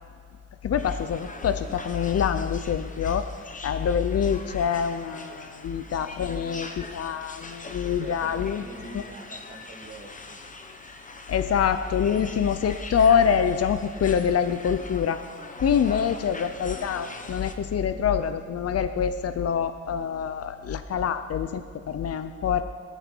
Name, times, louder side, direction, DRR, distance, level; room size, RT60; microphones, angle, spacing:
voice 1, 0.6-3.3 3.6-8.6 8.9-9.0 11.3-15.2 15.6-22.6, left 7 dB, 55° left, 10 dB, 0.7 m, -25 dB
sound 1, 0.8-17.5, left 3 dB, 25° left, 1.1 m, -43 dB
voice 2, 8.0-10.4 16.0-16.1, right 2 dB, 30° right, -2 dB, 2.8 m, -44 dB
21.5 x 13.5 x 4.6 m, 2.2 s
wide cardioid pair, 135°, 30 cm